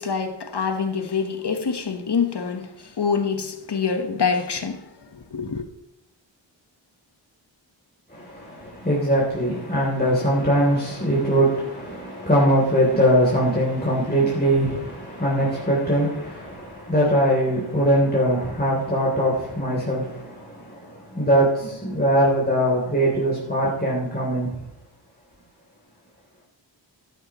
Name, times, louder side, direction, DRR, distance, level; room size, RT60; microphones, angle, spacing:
voice 1, 0.0-5.6, left 5 dB, 60° left, 1.2 m, -26 dB
voice 2, 8.1-24.6, equal, 20° left, 3.1 m, -21 dB
12.0 x 11.0 x 3.0 m
wide cardioid pair, 50°, 46 cm